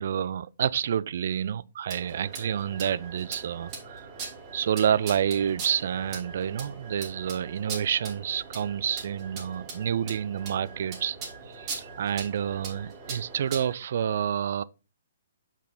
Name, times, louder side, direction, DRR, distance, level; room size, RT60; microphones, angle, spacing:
voice 1, 0.0-4.1 4.5-11.2 11.5-14.6, right 9 dB, 55° right, 0.3 m, -28 dB
sound 1, 1.9-13.7, right 4 dB, 25° right, 2.9 m, -41 dB
6.7 x 5.0 x 4.0 m
figure-of-eight pair, 130°, 0 cm